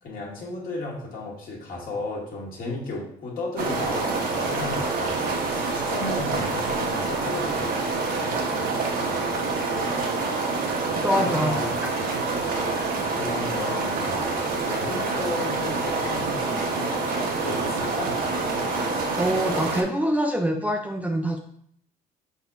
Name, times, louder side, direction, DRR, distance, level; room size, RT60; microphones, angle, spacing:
voice 1, 0.0-7.7 11.2-11.7 13.1-18.2, left 2 dB, 55° left, -3 dB, 1.6 m, -34 dB
sound 1, 3.6-19.8, right 3 dB, 60° right, 0.9 m, -27 dB
voice 2, 11.0-11.5 19.2-21.4, equal, 10° right, 2 dB, 0.4 m, -24 dB
5.1 x 4.1 x 2.3 m, 0.67 s
cardioid pair, 110°, 17 cm